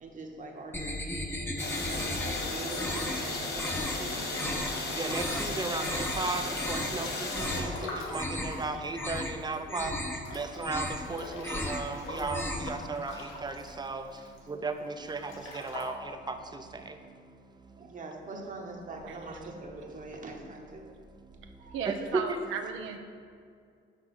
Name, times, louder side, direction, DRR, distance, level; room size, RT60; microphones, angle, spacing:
voice 1, 0.0-4.6 14.2-14.3 17.6-20.8 21.6-21.8, right 2 dB, 40° right, 2 dB, 1.1 m, -43 dB
sound 1, 0.7-2.4 2.7-3.2 3.5-4.0 4.3-4.7 5.1-5.5 5.8-6.2 6.5-7.0 7.3-7.7 8.0-8.6 8.9-9.4 9.7-10.2 10.5-11.1 11.4-11.9 12.2-12.7, left 1 dB, 10° left, 0.8 m, -35 dB
sound 2, 1.6-7.6, left 2 dB, 55° left, 1.3 m, -34 dB
Breathing / Bathtub (filling or washing) / Splash splatter, 4.3-5.9 6.4-9.6 9.8-9.9 10.2-14.4 15.0-15.8, left 2 dB, 80° left, 1.5 m, -44 dB
voice 2, 5.0-6.4 6.7-7.7 8.1-9.9 10.3-14.0 14.5-15.9 16.3-16.4 21.9-22.4, right 3 dB, 20° right, 7 dB, 0.6 m, -35 dB
voice 3, 21.7-23.0, right 6 dB, 85° right, 5 dB, 0.6 m, -35 dB
6.1 x 4.7 x 6.4 m, 2.3 s
cardioid pair, 90°, 20 cm